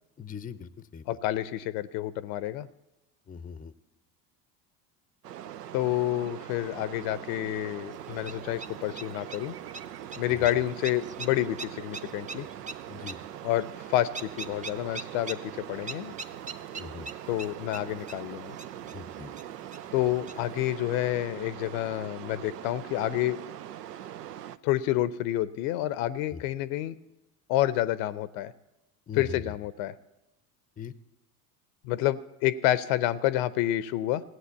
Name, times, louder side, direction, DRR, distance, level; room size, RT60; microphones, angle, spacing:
voice 1, 0.2-1.2 3.3-3.7 10.3-10.5 12.9-13.2 16.8-17.1 18.9-19.3 26.3-26.4 29.1-29.4 30.8-30.9, left 6 dB, 20° left, 16 dB, 0.6 m, -41 dB
voice 2, 1.1-2.7 5.7-9.5 10.2-12.5 13.4-16.1 17.3-18.6 19.9-23.4 24.6-26.9 27.5-28.5 29.2-29.9 31.8-34.2, left 13 dB, 55° left, 17 dB, 0.7 m, -29 dB
sound 1, 5.2-24.6, right 11 dB, 80° right, 0.6 m, -42 dB
sound 2, 7.9-20.6, right 3 dB, 15° right, 0.7 m, -44 dB
16.0 x 7.9 x 8.2 m, 0.96 s
figure-of-eight pair, 70°, 47 cm